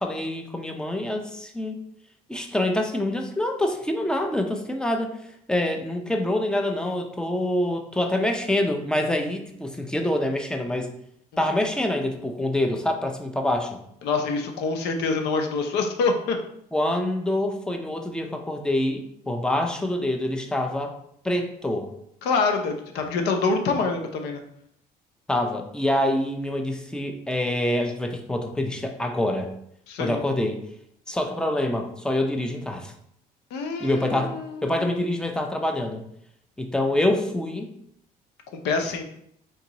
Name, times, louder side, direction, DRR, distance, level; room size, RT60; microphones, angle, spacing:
voice 1, 0.0-1.8 2.3-5.1 5.5-10.9 11.4-13.8 16.7-20.9 21.2-21.9 25.3-29.5 30.0-30.6 31.1-32.9 33.8-34.3 34.6-36.0 36.6-37.7, left 1 dB, 5° left, 4 dB, 0.6 m, -26 dB
voice 2, 14.0-16.4 22.2-24.4 29.9-30.2 33.5-34.8 38.6-39.0, left 4 dB, 85° left, 4 dB, 0.7 m, -26 dB
3.8 x 2.8 x 4.0 m, 0.72 s
cardioid pair, 110°, 17 cm